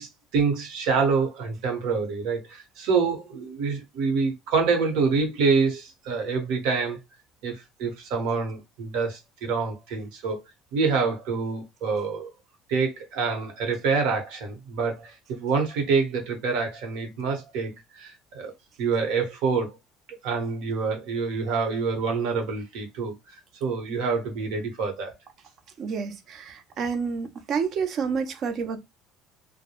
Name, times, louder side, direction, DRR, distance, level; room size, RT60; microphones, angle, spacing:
voice 1, 0.0-7.0 7.4-10.4 10.7-12.3 12.7-18.5 18.8-19.8 20.2-23.4 23.6-25.1, right 4 dB, 75° right, 0.9 m, -26 dB
voice 2, 25.8-28.8, right 5 dB, 45° right, 0.5 m, -29 dB
2.2 x 2.0 x 2.9 m
cardioid pair, 135°, 0 cm